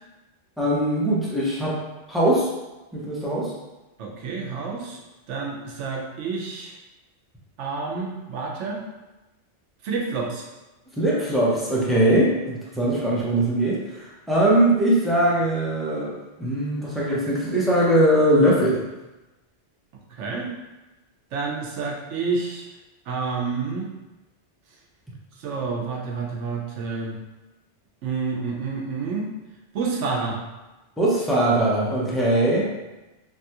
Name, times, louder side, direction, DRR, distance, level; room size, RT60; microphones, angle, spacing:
voice 1, 0.6-1.8 2.1-2.5 2.9-3.5 11.0-18.8 31.0-32.7, right 1 dB, ahead, -7 dB, 0.3 m, -21 dB
voice 2, 4.0-5.0 5.3-6.7 7.6-8.8 9.8-10.4 20.2-20.5 21.3-22.7 23.1-23.9 25.4-27.2 28.0-29.3 29.7-30.4, right 4 dB, 90° right, 0 dB, 0.9 m, -29 dB
3.2 x 2.3 x 2.7 m, 1.1 s
omnidirectional pair, 1.2 m